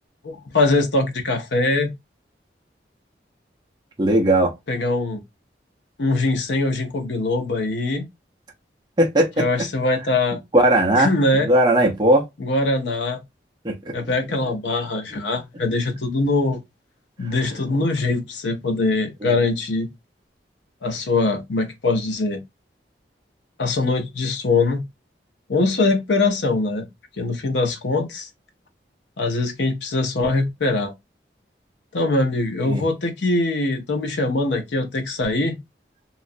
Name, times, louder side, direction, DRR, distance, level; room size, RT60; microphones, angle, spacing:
voice 1, 0.2-1.9 4.7-5.2 6.0-8.0 9.4-10.4 11.0-11.5 12.4-13.2 13.9-16.6 17.2-19.9 20.8-22.4 23.6-24.8 25.5-26.9 27.2-28.3 29.2-30.9 31.9-35.6, left 2 dB, 85° left, 0.7 m, -22 dB
voice 2, 4.0-4.5 9.0-9.4 10.5-11.1 11.4-12.3 13.6-13.8 15.1-15.2 19.2-19.3 32.6-32.8, right 1 dB, 25° right, 0.6 m, -17 dB
3.0 x 2.4 x 2.5 m
head